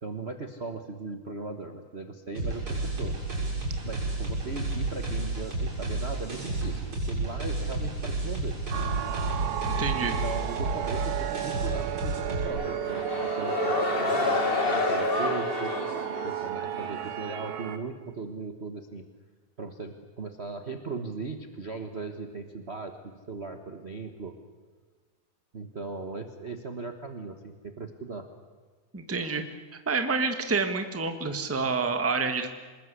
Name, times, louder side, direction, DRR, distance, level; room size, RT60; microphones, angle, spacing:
voice 1, 0.0-3.2 3.8-8.5 10.0-15.8 16.2-19.0 19.6-24.3 25.5-28.3 29.2-29.4, right 4 dB, 60° right, 6 dB, 0.6 m, -38 dB
sound 1, 2.4-12.5, right 2 dB, 40° right, 7.9 m, -31 dB
sound 2, 8.7-17.8, right 11 dB, 85° right, 2.7 m, -33 dB
voice 2, 9.6-10.1 28.9-29.4 29.9-32.5, right 4 dB, 10° right, 7 dB, 0.6 m, -28 dB
sound 3, 12.5-17.0, left 3 dB, 35° left, 1.0 m, -29 dB
26.0 x 20.5 x 8.3 m, 1.4 s
omnidirectional pair, 3.5 m